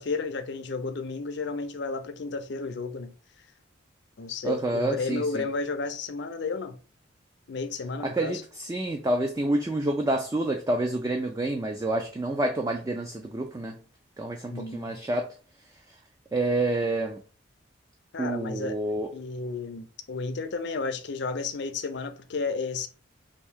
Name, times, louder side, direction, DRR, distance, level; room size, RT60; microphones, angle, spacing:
voice 1, 0.0-3.1 4.2-6.8 7.5-8.4 14.5-15.0 18.1-18.8 19.1-22.9, left 4 dB, 60° left, 0.5 m, -32 dB
voice 2, 4.4-5.4 8.0-13.8 14.2-15.3 16.3-17.2 18.2-19.1, right 2 dB, 15° right, 0.3 m, -28 dB
3.6 x 2.6 x 3.5 m
head